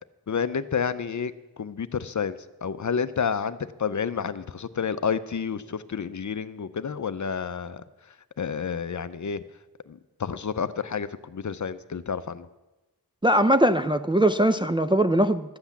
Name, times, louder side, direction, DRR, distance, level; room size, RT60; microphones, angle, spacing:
voice 1, 0.3-1.3 1.6-7.8 8.4-9.4 9.9-12.5, left 6 dB, 45° left, 13 dB, 0.6 m, -30 dB
voice 2, 13.2-15.6, right 1 dB, 15° right, 8 dB, 0.4 m, -21 dB
13.0 x 7.9 x 7.2 m, 1.1 s
cardioid pair, 55°, 40 cm